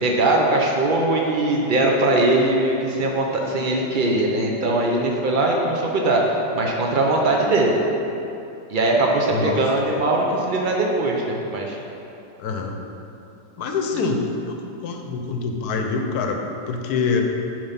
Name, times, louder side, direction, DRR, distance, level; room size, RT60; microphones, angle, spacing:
voice 1, 0.0-7.7 8.7-11.8, right 2 dB, 75° right, 0 dB, 0.4 m, -21 dB
voice 2, 9.3-9.6 12.4-12.8 13.6-16.4 16.7-17.2, left 4 dB, 60° left, 3 dB, 1.2 m, -25 dB
9.3 x 4.8 x 5.7 m, 2.9 s
omnidirectional pair, 2.1 m